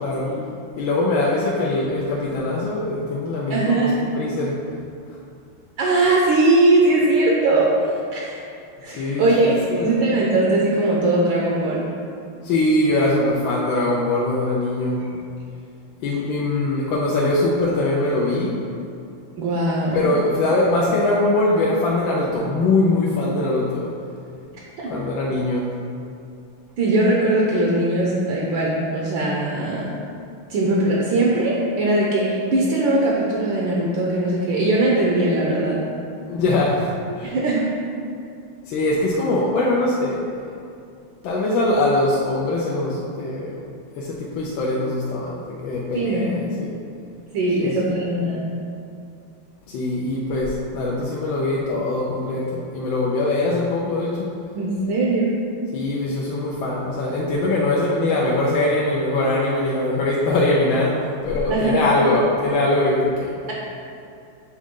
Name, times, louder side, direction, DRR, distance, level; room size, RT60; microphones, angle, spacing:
voice 1, 0.8-4.5 5.1-5.2 8.9-10.2 12.4-15.0 16.0-18.6 19.9-23.9 24.8-25.7 36.3-37.3 38.7-40.3 41.2-43.7 44.0-46.7 47.6-47.9 49.7-54.3 55.7-63.5, left 2 dB, 75° left, -4 dB, 1.3 m, -22 dB
voice 2, 3.5-4.0 5.8-7.7 8.1-8.3 8.8-9.5 9.8-11.8 15.0-15.1 19.4-20.1 24.8-24.9 26.8-29.9 30.5-35.8 37.2-37.6 45.9-46.4 47.3-48.4 54.5-55.3 61.5-61.8, right 2 dB, 70° right, -4 dB, 1.4 m, -20 dB
7.6 x 3.6 x 3.6 m, 2.5 s
omnidirectional pair, 2.3 m